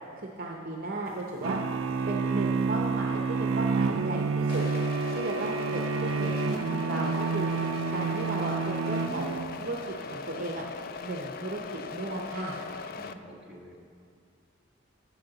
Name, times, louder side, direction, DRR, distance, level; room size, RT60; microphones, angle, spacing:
voice 1, 0.4-1.6 2.1-4.7 5.1-7.5 7.9-10.6 11.0-12.6, right 2 dB, 45° right, -1 dB, 0.7 m, -35 dB
sound 1, 1.4-9.8, right 4 dB, 80° right, 0.4 m, -29 dB
sound 2, 4.5-13.1, left 5 dB, 45° left, 0.3 m, -40 dB
voice 2, 13.0-13.8, equal, 5° right, -6 dB, 1.4 m, -48 dB
13.5 x 6.4 x 3.9 m, 2.4 s
head